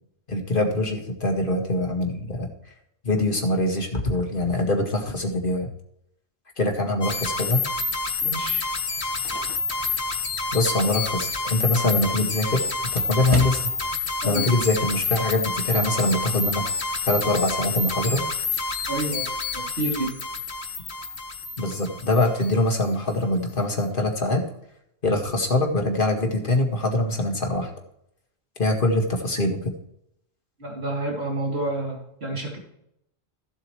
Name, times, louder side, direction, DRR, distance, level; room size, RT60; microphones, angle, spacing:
voice 1, 0.3-2.5 3.0-5.7 6.6-7.6 10.5-13.6 14.2-16.7 17.1-18.2 18.5-18.6 21.6-24.5 25.0-27.7 28.6-29.7, left 2 dB, 50° left, 2 dB, 2.1 m, -23 dB
sound 1, 7.0-22.9, left 4 dB, 70° left, 1.6 m, -28 dB
voice 2, 8.2-8.6 14.2-14.5 18.9-19.2 19.8-20.1 30.6-32.6, right 2 dB, 70° right, -2 dB, 3.3 m, -29 dB
sound 2, 8.8-14.0, right 1 dB, 30° right, 1.7 m, -37 dB
15.0 x 7.8 x 3.2 m, 0.77 s
omnidirectional pair, 1.1 m